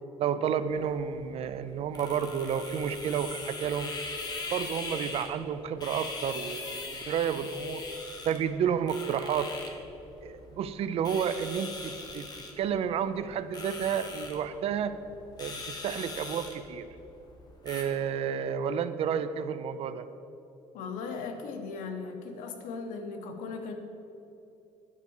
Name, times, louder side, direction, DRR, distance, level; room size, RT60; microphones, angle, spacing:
voice 1, 0.2-3.9 4.5-7.8 8.2-9.5 10.2-12.3 12.6-15.0 15.4-16.9 17.6-20.0, right 8 dB, 50° right, 12 dB, 0.5 m, -31 dB
sound 1, 0.7-17.8, left 3 dB, 30° left, 1.2 m, -41 dB
voice 2, 20.7-23.7, left 4 dB, 85° left, 5 dB, 1.1 m, -38 dB
10.5 x 4.7 x 7.1 m, 2.9 s
cardioid pair, 150°, 13 cm